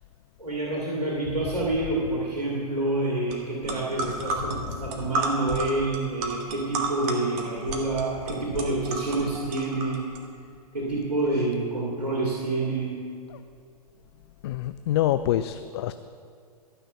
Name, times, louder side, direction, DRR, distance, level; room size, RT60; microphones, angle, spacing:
voice 1, 0.4-10.1 10.7-13.0, right 2 dB, 85° right, -5 dB, 2.3 m, -28 dB
sound 1, 3.3-3.4 3.6-10.2, right 3 dB, 35° right, 1.6 m, -32 dB
voice 2, 14.4-16.0, left 12 dB, 40° left, 11 dB, 0.4 m, -26 dB
13.0 x 6.2 x 6.9 m, 2.4 s
figure-of-eight pair, 110°, 20 cm